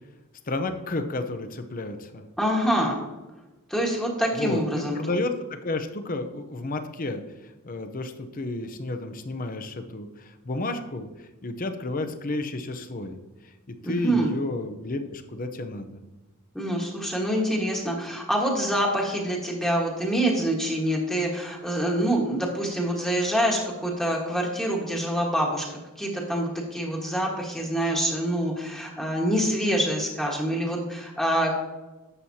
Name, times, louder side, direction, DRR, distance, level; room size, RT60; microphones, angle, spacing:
voice 1, 0.5-2.3 4.3-13.2 13.4-16.0, left 2 dB, 40° left, 8 dB, 0.7 m, -32 dB
voice 2, 2.4-3.0 3.7-5.0 13.8-14.3 16.5-31.5, right 1 dB, ahead, -2 dB, 1.4 m, -26 dB
11.0 x 7.5 x 2.8 m, 1.1 s
head